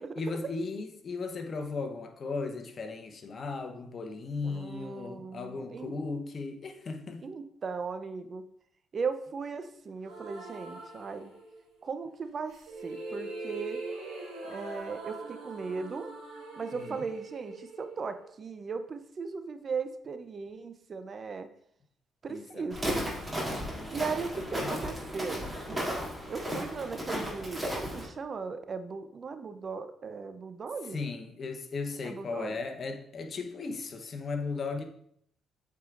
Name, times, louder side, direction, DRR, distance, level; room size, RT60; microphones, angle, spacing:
voice 1, 0.0-7.3 16.7-17.0 22.3-22.7 23.7-24.9 30.9-34.8, left 4 dB, 50° left, 0.9 m, -37 dB
voice 2, 4.4-5.9 7.2-8.4 8.9-11.3 11.8-13.8 14.4-16.1 16.6-21.5 22.2-23.0 23.9-25.8 26.3-31.0 32.0-32.5, right 5 dB, 45° right, 0.6 m, -37 dB
sound 1, 10.0-11.8 12.5-18.6, right 2 dB, 90° right, 1.6 m, -42 dB
Walk footsteps, 22.7-28.1, equal, 15° right, 2.6 m, -34 dB
8.1 x 4.7 x 2.5 m
supercardioid pair, 60°, 0 cm